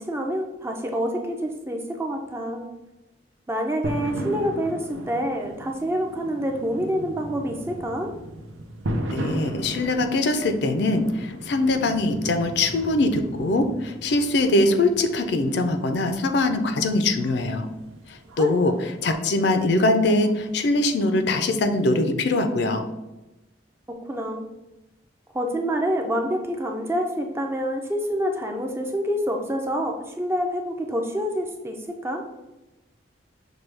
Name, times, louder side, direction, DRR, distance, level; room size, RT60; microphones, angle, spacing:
voice 1, 0.0-2.7 3.5-8.1 18.4-18.5 23.9-24.4 25.3-32.3, equal, 15° right, 2 dB, 0.4 m, -27 dB
sound 1, 3.8-21.8, right 1 dB, 90° right, 0.6 m, -37 dB
voice 2, 9.1-17.7 18.1-22.8, left 2 dB, 60° left, 7 dB, 0.4 m, -22 dB
6.0 x 2.3 x 3.3 m, 1.0 s
head